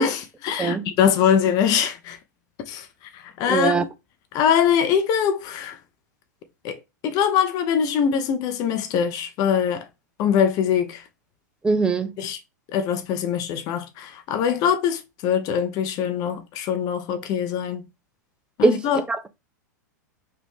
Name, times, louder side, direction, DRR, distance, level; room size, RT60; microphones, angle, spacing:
voice 1, 0.0-2.2 2.7-2.9 3.1-3.9 4.3-5.8 6.6-9.9 10.2-11.0 12.2-12.4 12.7-17.9 18.6-19.0, left 8 dB, 40° left, 0.6 m, -23 dB
voice 2, 3.5-3.8 11.6-12.1 18.6-18.8 19.1-19.3, right 4 dB, 10° right, 0.4 m, -21 dB
3.3 x 2.5 x 3.3 m
hypercardioid pair, 100°, 10 cm